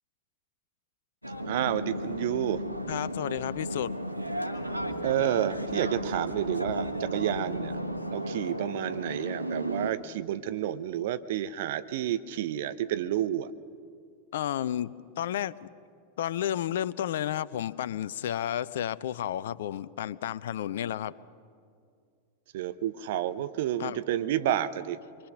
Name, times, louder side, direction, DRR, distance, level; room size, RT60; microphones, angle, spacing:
sound 1, 1.2-9.9, equal, 90° left, 1.3 m, -34 dB
voice 1, 1.4-2.6 5.0-7.7 8.1-13.5 22.5-25.0, right 12 dB, 55° right, 13 dB, 0.8 m, -30 dB
voice 2, 2.9-4.0 14.3-15.7 16.2-21.1 23.8-24.0, left 11 dB, 60° left, 19 dB, 0.6 m, -32 dB
24.5 x 24.0 x 6.3 m, 2.3 s
figure-of-eight pair, 90°, 0 cm